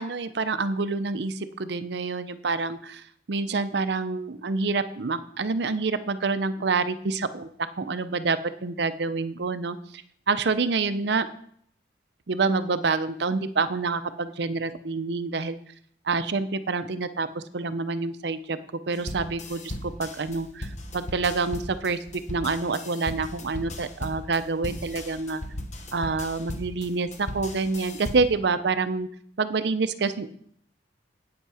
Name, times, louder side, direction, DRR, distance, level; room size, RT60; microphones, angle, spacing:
voice 1, 0.0-7.5 7.8-11.3 12.3-15.6 16.0-18.6 18.9-22.0 22.3-25.4 25.9-29.1 29.4-30.3, right 4 dB, 65° right, 12 dB, 0.6 m, -27 dB
sound 1, 18.9-28.4, left 1 dB, 40° left, 1.1 m, -37 dB
8.7 x 8.1 x 4.8 m, 0.65 s
head